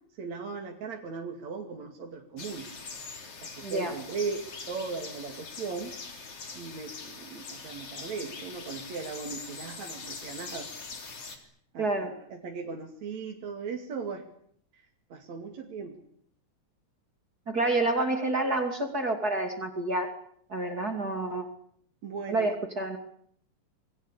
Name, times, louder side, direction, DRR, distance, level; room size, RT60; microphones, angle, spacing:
voice 1, 0.2-2.7 3.4-6.0 6.5-10.7 11.3-11.5 11.7-14.3 14.7-16.0 18.1-18.3 22.0-22.5, right 5 dB, 65° right, 2 dB, 3.8 m, -38 dB
sound 1, 2.4-11.4, left 4 dB, 50° left, 4.4 m, -43 dB
voice 2, 3.6-3.9 11.8-12.1 17.5-20.1 20.5-21.4 22.3-23.0, right 2 dB, 30° right, 5 dB, 3.0 m, -28 dB
27.5 x 22.5 x 8.4 m, 0.65 s
omnidirectional pair, 3.5 m